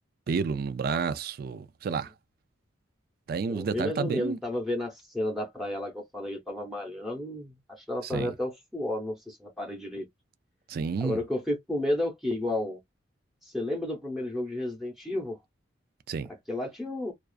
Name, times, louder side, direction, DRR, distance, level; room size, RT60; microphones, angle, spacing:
voice 1, 0.3-2.1 3.3-4.4 8.0-8.3 10.7-11.2 16.1-16.3, right 5 dB, 50° right, 0.3 m, -30 dB
voice 2, 3.5-10.1 11.0-12.8 13.4-15.4 16.5-17.1, left 1 dB, ahead, 0.7 m, -32 dB
2.4 x 2.3 x 2.3 m
head